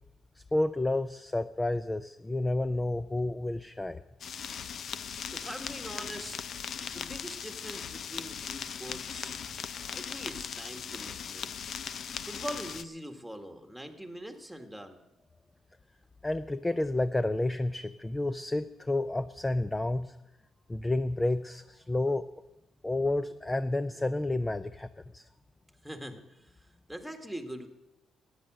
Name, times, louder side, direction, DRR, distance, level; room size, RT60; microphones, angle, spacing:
voice 1, 0.4-4.0 6.6-6.7 16.2-20.1 20.7-22.3 22.8-24.9 25.1-25.2, left 2 dB, 15° left, 12 dB, 0.5 m, -30 dB
sound 1, 4.2-12.8, left 7 dB, 60° left, 0.6 m, -39 dB
voice 2, 5.3-6.4 6.8-9.4 9.8-11.5 12.2-15.0 25.8-27.7, equal, ahead, 5 dB, 1.8 m, -43 dB
13.5 x 10.0 x 7.7 m, 0.95 s
cardioid pair, 90°, 0 cm